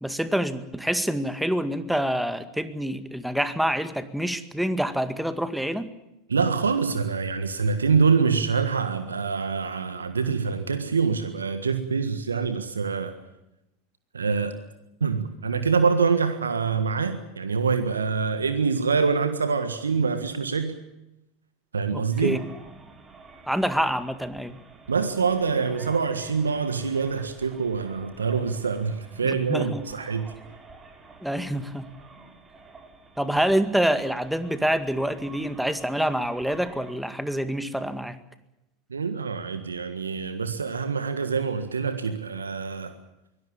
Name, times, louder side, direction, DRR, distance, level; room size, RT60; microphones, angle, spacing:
voice 1, 0.0-5.9 21.9-22.4 23.5-24.6 29.2-29.8 31.2-31.9 33.2-38.2, equal, ahead, 11 dB, 2.0 m, -26 dB
voice 2, 6.3-13.1 14.1-14.6 15.0-20.8 21.7-22.4 24.9-30.3 38.9-42.9, right 5 dB, 85° right, 10 dB, 1.6 m, -25 dB
sound 1, 22.1-36.9, right 4 dB, 20° right, 6.2 m, -49 dB
23.5 x 18.0 x 8.8 m, 0.89 s
figure-of-eight pair, 80°, 0 cm